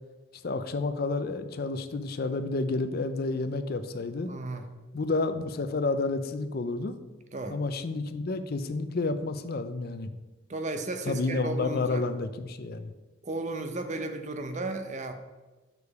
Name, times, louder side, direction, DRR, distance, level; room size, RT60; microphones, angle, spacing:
voice 1, 0.4-4.3 4.9-7.0 7.5-10.1 11.1-12.9, left 3 dB, 50° left, 10 dB, 0.4 m, -30 dB
voice 2, 4.2-4.7 7.3-7.6 10.5-12.0 13.2-15.1, right 2 dB, 35° right, 7 dB, 0.6 m, -34 dB
6.7 x 5.0 x 4.7 m, 1.2 s
head